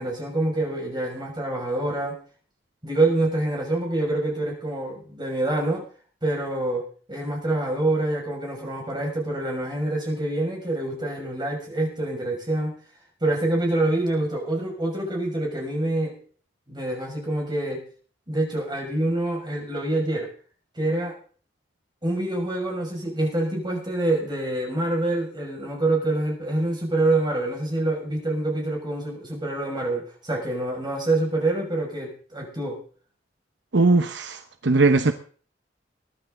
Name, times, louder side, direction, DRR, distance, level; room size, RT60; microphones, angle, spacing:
voice 1, 0.0-2.1 2.8-5.8 6.2-6.8 7.1-12.7 13.2-16.2 16.7-17.8 18.3-20.3 20.7-21.1 22.0-32.8, right 2 dB, 25° right, 6.2 m, -26 dB
voice 2, 33.7-35.1, right 3 dB, 70° right, 0.9 m, -19 dB
22.0 x 11.5 x 3.9 m
head